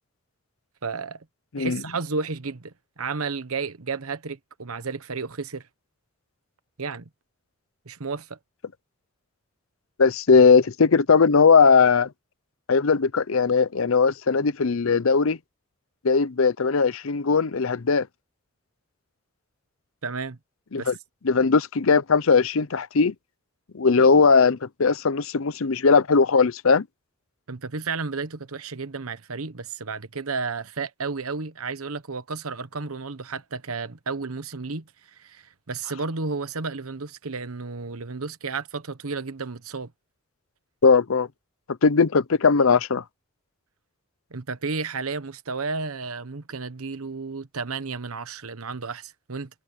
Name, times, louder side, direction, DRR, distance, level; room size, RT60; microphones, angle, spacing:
voice 1, 0.8-1.2 1.6-5.7 6.8-7.1 7.8-8.4 20.0-20.4 20.7-20.9 27.5-39.9 44.3-49.5, right 4 dB, 90° right, 1.2 m, -32 dB
voice 2, 10.0-12.1 12.7-15.4 16.0-18.1 20.7-20.9 21.2-23.1 23.7-26.9 40.8-41.3 41.8-43.0, left 5 dB, 75° left, 0.7 m, -19 dB
head